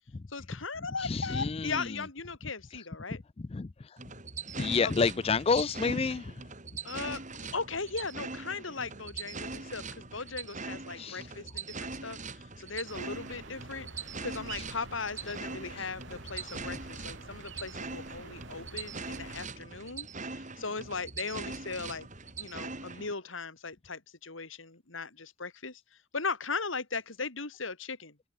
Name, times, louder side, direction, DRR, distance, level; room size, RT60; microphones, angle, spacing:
voice 1, 0.3-3.2 4.8-4.9 6.8-7.2 7.5-22.1 22.4-25.8 26.1-28.2, left 4 dB, 85° left, 2.9 m, -38 dB
voice 2, 1.0-1.8 3.4-3.7 4.6-6.3 11.0-11.3 15.8-15.9, left 4 dB, 30° left, 0.4 m, -29 dB
sound 1, 4.0-23.1, right 4 dB, 40° right, 5.8 m, -42 dB
sound 2, 12.8-19.5, right 3 dB, 70° right, 2.8 m, -48 dB
open air
head